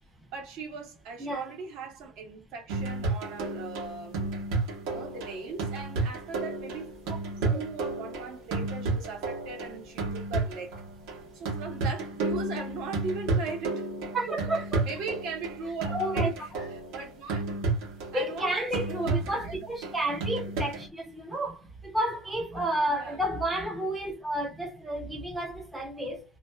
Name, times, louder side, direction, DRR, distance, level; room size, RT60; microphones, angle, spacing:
voice 1, 0.3-4.4 4.9-7.3 7.5-10.8 11.3-13.9 14.3-14.5 14.8-16.4 16.7-17.4 18.1-19.7 22.9-23.3, right 4 dB, 60° right, 1.0 m, -39 dB
voice 2, 1.2-1.6 7.1-7.6 14.1-14.9 15.9-16.3 16.6-16.7 18.1-21.6 21.8-26.2, right 1 dB, 5° right, 0.5 m, -31 dB
sound 1, 2.7-20.9, right 3 dB, 80° right, 1.0 m, -32 dB
2.5 x 2.3 x 2.2 m
cardioid pair, 170°, 0 cm